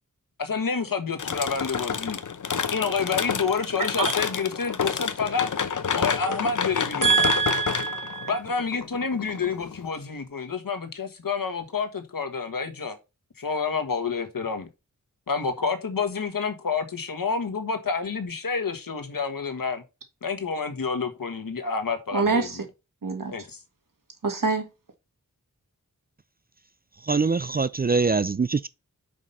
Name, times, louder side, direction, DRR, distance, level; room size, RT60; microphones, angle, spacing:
voice 1, 0.4-2.2 2.7-5.5 5.9-7.2 8.3-13.0 13.4-14.7 15.3-19.8 20.2-22.6 23.3-23.6, left 5 dB, 85° left, 1.4 m, -28 dB
sound 1, 1.2-9.9, left 6 dB, 65° left, 0.7 m, -29 dB
voice 2, 7.0-8.3 22.1-22.6 23.0-23.3 24.2-24.6, right 5 dB, 75° right, 1.7 m, -24 dB
voice 3, 27.1-28.7, right 4 dB, 30° right, 0.3 m, -23 dB
5.6 x 5.2 x 5.3 m
wide cardioid pair, 55°, 33 cm